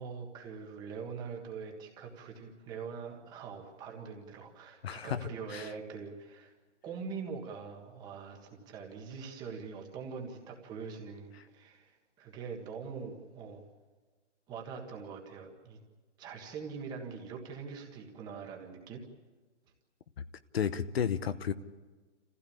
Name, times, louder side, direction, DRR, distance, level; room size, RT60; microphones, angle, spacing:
voice 1, 0.0-6.5 6.8-13.7 14.5-15.8 16.2-19.0, right 5 dB, 10° right, 1.5 m, -43 dB
voice 2, 4.8-5.2 5.5-5.7 20.5-21.5, left 8 dB, 60° left, 0.9 m, -32 dB
26.5 x 15.5 x 8.6 m
hypercardioid pair, 175°, 35 cm